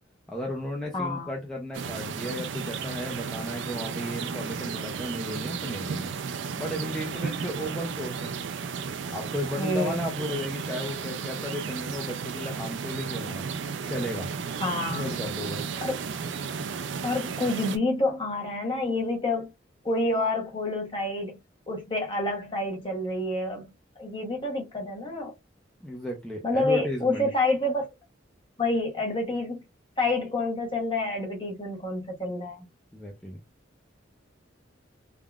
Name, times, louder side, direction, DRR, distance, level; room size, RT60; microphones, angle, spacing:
voice 1, 0.3-6.1 6.6-8.3 9.1-13.5 13.9-14.3 14.9-15.7 25.8-27.3 32.9-33.4, left 1 dB, 5° left, 0.5 m, -34 dB
voice 2, 0.9-1.3 9.6-10.1 14.6-15.1 15.8-16.0 17.0-19.5 19.8-21.4 21.7-23.7 24.0-25.3 26.4-27.9 28.6-29.6 30.0-32.7, left 2 dB, 25° left, 0.9 m, -28 dB
sound 1, 1.7-17.8, right 6 dB, 65° right, 0.4 m, -34 dB
3.5 x 2.2 x 2.3 m
head